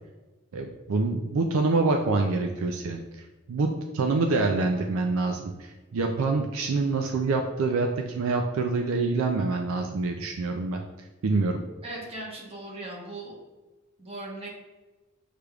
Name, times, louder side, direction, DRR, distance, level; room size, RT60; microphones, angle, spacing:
voice 1, 0.5-3.0 3.5-10.8 11.2-11.6, right 3 dB, 85° right, 3 dB, 0.4 m, -26 dB
voice 2, 11.8-13.3 14.0-14.5, right 2 dB, 30° right, -3 dB, 1.0 m, -38 dB
6.4 x 3.3 x 2.3 m, 1.2 s
head